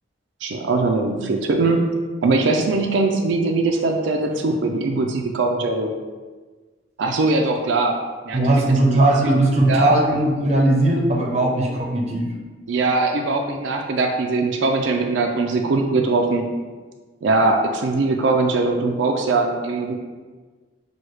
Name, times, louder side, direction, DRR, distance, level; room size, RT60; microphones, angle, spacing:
voice 1, 0.4-1.8 2.2-5.9 7.0-8.0 8.3-9.3 9.7-9.9 12.7-16.4 17.2-19.9, right 3 dB, 85° right, 3 dB, 0.4 m, -21 dB
voice 2, 8.3-12.3, right 2 dB, 35° right, -1 dB, 0.6 m, -18 dB
6.1 x 2.3 x 3.1 m, 1.4 s
head